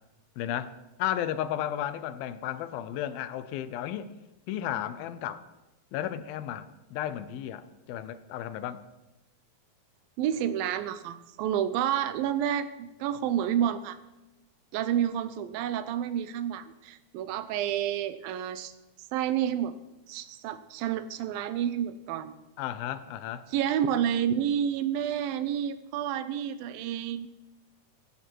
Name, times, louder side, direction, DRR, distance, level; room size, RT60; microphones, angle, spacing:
voice 1, 0.4-0.7 1.0-4.1 4.5-5.4 5.9-8.8 22.6-23.5, left 11 dB, 90° left, 2.6 m, -33 dB
voice 2, 10.2-14.0 14.7-18.7 19.1-19.7 20.1-22.3 23.5-27.3, right 10 dB, 80° right, 2.6 m, -29 dB
16.5 x 15.5 x 4.6 m
omnidirectional pair, 4.1 m